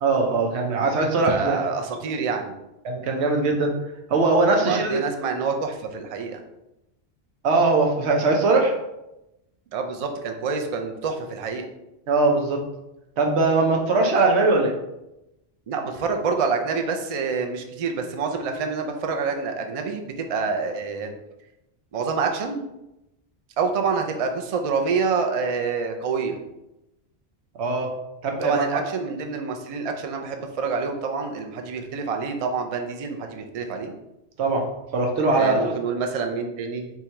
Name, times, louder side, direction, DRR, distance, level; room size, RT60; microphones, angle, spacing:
voice 1, 0.0-1.8 2.8-3.8 4.1-5.0 7.4-8.7 12.1-12.6 13.2-14.7 27.6-27.9 28.2-28.8 34.4-35.8, right 3 dB, 85° right, 1 dB, 1.0 m, -21 dB
voice 2, 1.3-2.6 4.7-6.4 9.7-11.7 15.7-21.1 21.9-22.7 23.6-26.4 28.4-33.9 35.3-36.9, right 5 dB, 50° right, 4 dB, 0.4 m, -27 dB
3.6 x 2.9 x 4.4 m, 0.91 s
omnidirectional pair, 1.1 m